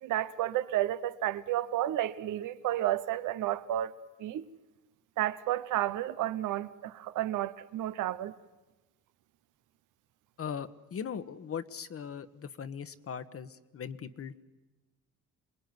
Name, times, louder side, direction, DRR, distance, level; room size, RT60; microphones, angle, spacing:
voice 1, 0.0-3.9 4.2-4.4 5.2-8.3, right 13 dB, 85° right, 1.0 m, -31 dB
voice 2, 10.4-14.4, left 7 dB, 50° left, 1.3 m, -39 dB
27.5 x 20.5 x 9.5 m
cardioid pair, 90°, 30 cm